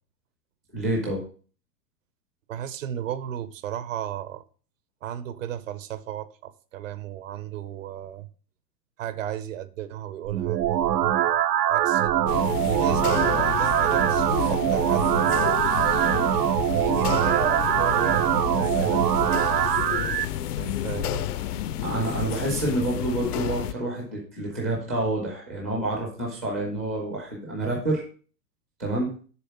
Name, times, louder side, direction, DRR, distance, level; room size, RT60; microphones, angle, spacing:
voice 1, 0.7-1.2 21.8-28.0 28.8-29.1, right 2 dB, 10° right, 0.4 m, -28 dB
voice 2, 2.5-4.4 5.0-8.3 9.0-11.3 11.6-15.6 16.7-20.0 20.6-21.3, right 11 dB, 50° right, 0.6 m, -35 dB
sound 1, 10.3-20.3, right 11 dB, 85° right, 0.7 m, -23 dB
sound 2, 12.3-23.7, left 12 dB, 70° left, 0.6 m, -30 dB
6.9 x 3.7 x 5.6 m
hypercardioid pair, 155°, 49 cm